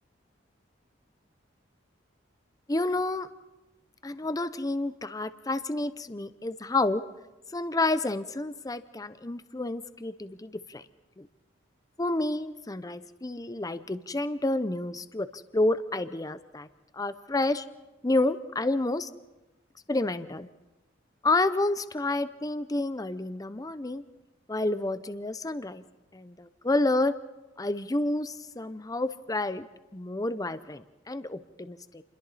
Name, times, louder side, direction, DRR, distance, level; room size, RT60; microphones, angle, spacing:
voice 1, 2.7-3.3 4.0-7.0 7.5-10.8 11.2-11.3 12.0-16.7 16.9-17.6 18.0-19.1 19.9-20.5 21.2-24.0 24.5-25.8 26.1-27.1 27.6-29.7 29.9-32.0, left 2 dB, 20° left, 13 dB, 0.7 m, -29 dB
29.0 x 22.0 x 4.2 m, 1.0 s
head